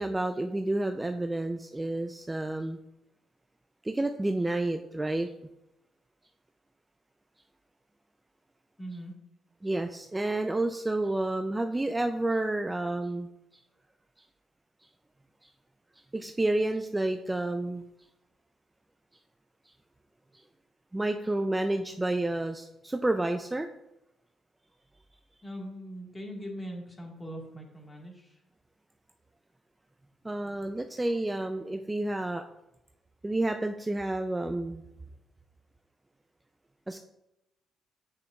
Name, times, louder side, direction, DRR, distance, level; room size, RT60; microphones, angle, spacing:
voice 1, 0.0-2.8 3.8-5.3 9.6-13.3 16.1-17.8 20.3-20.4 20.9-23.7 30.2-32.4 33.2-34.8 36.9-37.0, right 2 dB, 15° right, 6 dB, 0.3 m, -30 dB
voice 2, 8.8-9.1 25.4-28.4, equal, 20° left, 1 dB, 1.6 m, -41 dB
7.3 x 6.5 x 2.3 m, 0.88 s
cardioid pair, 90°, 0 cm